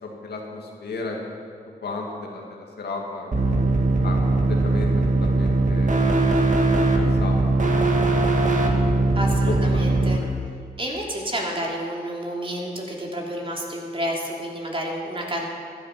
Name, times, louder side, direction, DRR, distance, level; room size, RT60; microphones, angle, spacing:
voice 1, 0.0-1.2 1.8-3.5 4.0-6.0 6.5-7.6 9.4-10.3, left 3 dB, 85° left, 0 dB, 2.1 m, -34 dB
sound 1, 3.3-10.2, right 2 dB, 50° right, 1.8 m, -20 dB
voice 2, 9.1-10.2 10.8-15.5, equal, 35° right, -1 dB, 3.1 m, -30 dB
15.0 x 10.5 x 6.0 m, 2.2 s
cardioid pair, 55°, 17 cm